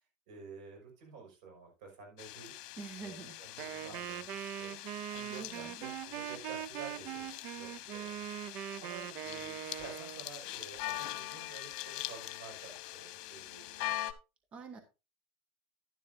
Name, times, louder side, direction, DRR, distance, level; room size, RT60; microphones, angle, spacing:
voice 1, 0.3-2.5 3.0-8.4 8.8-14.0, right 5 dB, 85° right, 2 dB, 5.8 m, -51 dB
sound 1, 2.2-14.1, left 16 dB, 70° left, 1.2 m, -43 dB
voice 2, 2.8-3.4 5.3-5.8 14.5-14.8, right 5 dB, 30° right, 7 dB, 1.4 m, -46 dB
Wind instrument woodwind instrument, 3.6-10.2, right 13 dB, 50° right, 0.4 m, -42 dB
11.5 x 11.0 x 2.7 m, 0.28 s
cardioid pair, 155°, 4 cm